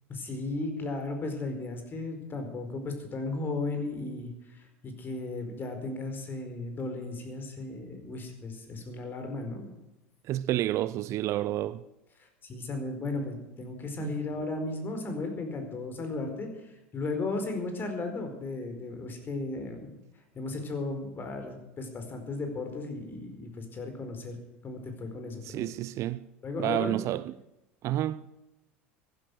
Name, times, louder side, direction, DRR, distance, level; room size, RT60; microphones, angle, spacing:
voice 1, 0.1-9.6 12.2-20.0 20.3-24.4 24.6-25.7 26.4-27.0, left 3 dB, 30° left, 4.6 m, -35 dB
voice 2, 10.3-11.8 14.0-14.2 25.4-26.3 26.6-27.3 27.8-28.2, right 14 dB, 45° right, 0.6 m, -30 dB
15.0 x 12.0 x 6.3 m
hypercardioid pair, 80°, 7 cm